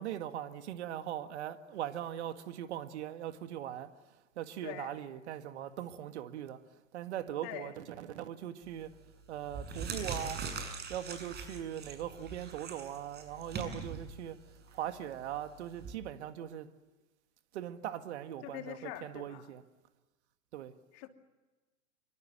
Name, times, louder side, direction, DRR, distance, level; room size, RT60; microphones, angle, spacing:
voice 1, 0.0-9.0 9.3-10.4 10.9-14.4 14.7-16.7 17.5-19.6 20.5-20.7, right 11 dB, 60° right, 1.9 m, -40 dB
voice 2, 4.6-5.0 7.4-7.7 18.4-19.5 20.9-21.1, left 13 dB, 45° left, 2.8 m, -44 dB
sound 1, 8.7-8.9 9.4-15.9, right 4 dB, 25° right, 6.9 m, -42 dB
26.5 x 24.5 x 7.7 m
figure-of-eight pair, 100°, 39 cm